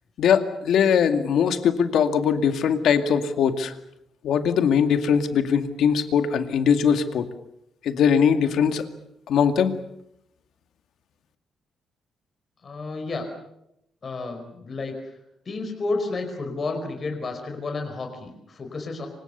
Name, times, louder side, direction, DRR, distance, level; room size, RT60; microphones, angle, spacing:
voice 1, 0.2-3.7 4.2-7.3 7.8-8.8 9.3-9.7, left 7 dB, 70° left, 8 dB, 2.2 m, -21 dB
voice 2, 12.6-13.3 14.0-15.1 15.4-19.1, left 3 dB, 35° left, 4 dB, 5.0 m, -31 dB
27.0 x 25.5 x 6.9 m, 0.81 s
cardioid pair, 155°, 0 cm